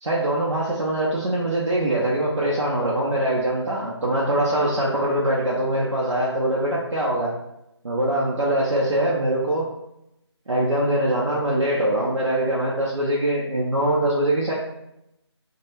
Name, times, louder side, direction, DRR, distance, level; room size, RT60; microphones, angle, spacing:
voice 1, 0.0-7.3 7.8-9.7 10.5-14.6, right 1 dB, 80° right, -6 dB, 0.6 m, -23 dB
2.2 x 2.0 x 3.1 m, 0.83 s
figure-of-eight pair, 170°, 15 cm